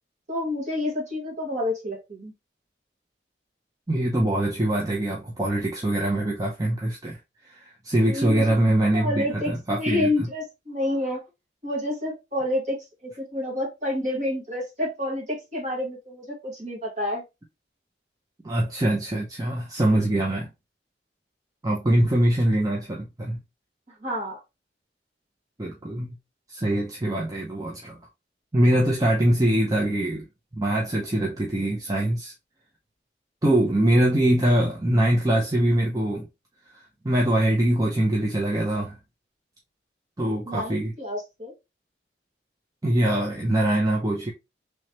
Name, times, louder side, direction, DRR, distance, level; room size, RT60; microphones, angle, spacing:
voice 1, 0.3-2.3 8.1-8.6 8.9-11.2 11.6-17.2 23.9-24.4 40.5-41.5, left 1 dB, 40° right, 1.5 m, -29 dB
voice 2, 3.9-10.3 18.4-20.5 21.6-23.4 25.6-26.2 26.5-28.0 28.5-30.3 30.5-32.3 33.4-36.3 37.0-39.0 40.2-40.9 42.8-44.3, right 1 dB, 20° right, 0.6 m, -23 dB
3.2 x 3.1 x 3.0 m
head